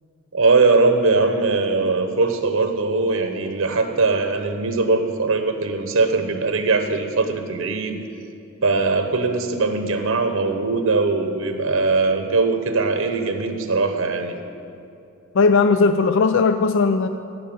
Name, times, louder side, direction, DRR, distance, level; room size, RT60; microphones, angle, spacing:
voice 1, 0.3-8.0 8.6-14.4, right 3 dB, 75° right, 7 dB, 0.9 m, -20 dB
voice 2, 15.3-17.1, left 4 dB, 60° left, 9 dB, 0.4 m, -17 dB
14.0 x 5.6 x 8.6 m, 2.8 s
head